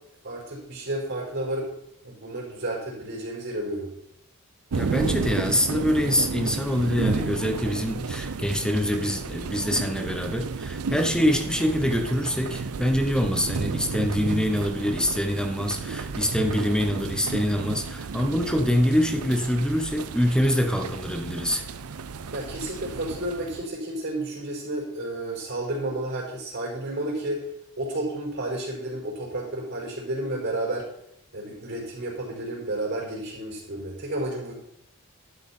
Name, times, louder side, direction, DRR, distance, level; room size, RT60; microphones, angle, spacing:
voice 1, 0.2-1.7 2.0-3.9 22.3-27.4 27.8-30.9 31.3-34.5, right 1 dB, 55° right, -2 dB, 4.8 m, -31 dB
voice 2, 4.7-21.6, equal, 5° left, 5 dB, 1.0 m, -25 dB
sound 1, 4.7-23.7, right 4 dB, 80° right, 0.6 m, -32 dB
12.0 x 6.8 x 4.4 m, 0.77 s
head